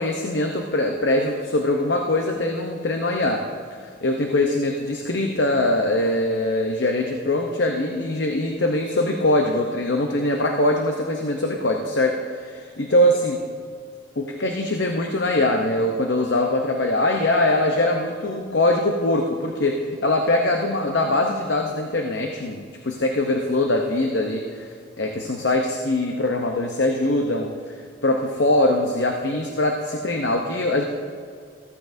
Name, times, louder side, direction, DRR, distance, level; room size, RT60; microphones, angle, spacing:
voice 1, 0.0-3.4 3.8-13.4 14.2-27.8 28.0-30.8, left 1 dB, 60° left, 2 dB, 0.8 m, -22 dB
15.0 x 14.0 x 2.7 m, 2.1 s
head